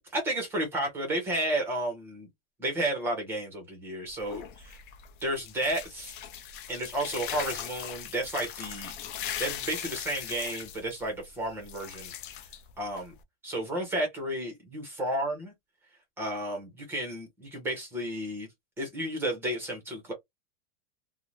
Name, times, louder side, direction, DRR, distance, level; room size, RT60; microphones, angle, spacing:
voice 1, 0.1-2.3 2.6-4.8 5.2-6.2 6.7-8.9 9.4-12.1 12.8-13.1 13.4-15.5 16.2-18.5 18.8-20.1, right 1 dB, 5° right, 0.7 m, -32 dB
sound 1, 4.1-13.2, left 9 dB, 55° left, 0.5 m, -40 dB
2.6 x 2.1 x 3.0 m
supercardioid pair, 175°, 31 cm